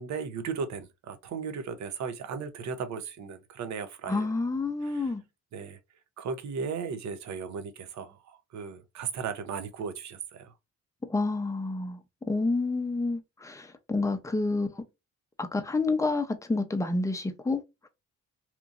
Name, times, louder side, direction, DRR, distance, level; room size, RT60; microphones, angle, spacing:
voice 1, 0.0-4.3 4.8-5.1 5.5-5.8 6.2-10.5, right 6 dB, 65° right, 0.6 m, -36 dB
voice 2, 4.1-5.2 11.0-12.0 12.3-14.8 15.4-17.6, left 3 dB, 10° left, 0.5 m, -29 dB
2.9 x 2.5 x 2.3 m
cardioid pair, 90°, 30 cm